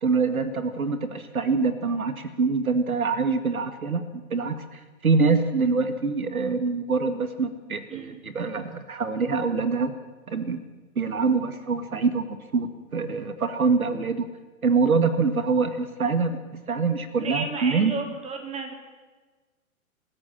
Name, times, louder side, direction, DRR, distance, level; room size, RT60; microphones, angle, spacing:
voice 1, 0.0-4.0 4.3-9.9 10.3-10.6 11.0-14.3 14.6-16.4 16.7-17.9, right 4 dB, 80° right, 10 dB, 2.1 m, -25 dB
voice 2, 7.9-8.2 17.2-18.7, right 4 dB, 15° right, 4 dB, 3.5 m, -33 dB
25.0 x 14.0 x 10.0 m, 1.3 s
figure-of-eight pair, 120°, 42 cm